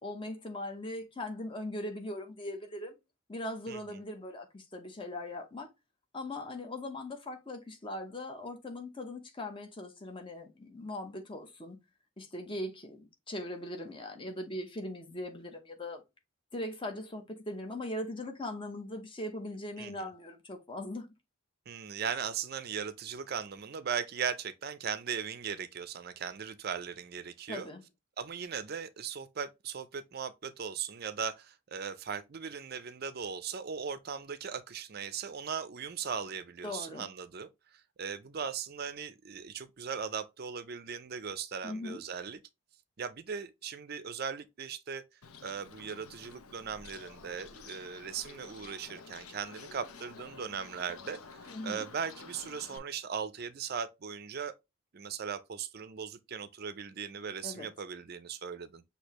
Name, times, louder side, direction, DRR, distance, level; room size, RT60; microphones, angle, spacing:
voice 1, 0.0-2.9 3.3-5.7 6.1-11.8 12.2-16.0 16.5-21.1 27.5-27.8 36.6-37.1 41.6-42.0 51.5-51.9 57.4-57.7, left 1 dB, 25° left, 0.9 m, -40 dB
voice 2, 21.7-27.7 28.2-37.5 38.0-42.4 43.0-45.0 45.4-54.5 54.9-58.8, right 6 dB, 45° right, 0.5 m, -38 dB
Bird, 45.2-52.8, left 5 dB, 90° left, 0.7 m, -51 dB
6.2 x 2.8 x 3.0 m
head